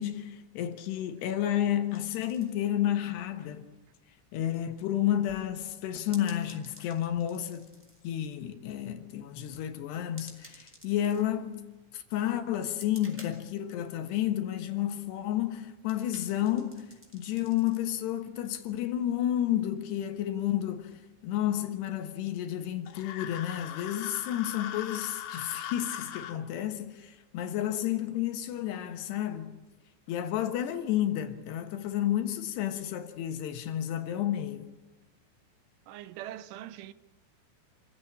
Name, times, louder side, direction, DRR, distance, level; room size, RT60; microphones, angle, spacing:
voice 1, 0.0-3.7 4.3-7.7 8.0-29.5 30.1-34.7, left 11 dB, 70° left, 3.0 m, -31 dB
sound 1, 1.9-21.8, equal, 5° right, 3.5 m, -57 dB
sound 2, 22.9-26.4, left 10 dB, 85° left, 4.2 m, -40 dB
voice 2, 35.9-36.9, right 13 dB, 80° right, 3.2 m, -42 dB
27.5 x 16.0 x 8.6 m
omnidirectional pair, 5.8 m